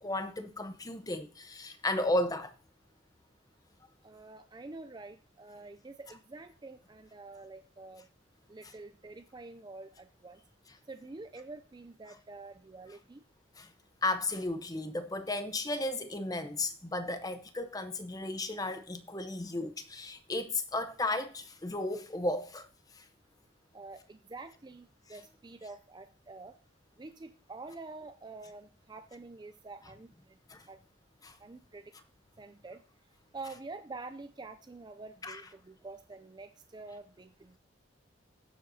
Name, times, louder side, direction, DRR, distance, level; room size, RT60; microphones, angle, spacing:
voice 1, 0.0-2.5 13.6-13.7 14.0-22.7 22.9-23.1 30.5-30.6 31.2-31.4 35.2-35.4, left 2 dB, 20° left, 0.8 m, -34 dB
voice 2, 4.0-8.0 8.5-10.4 10.9-13.2 23.7-26.5 27.0-30.1 30.7-30.8 31.4-31.9 32.4-32.8 33.3-37.6, right 3 dB, 20° right, 0.4 m, -47 dB
18.5 x 7.7 x 2.7 m
head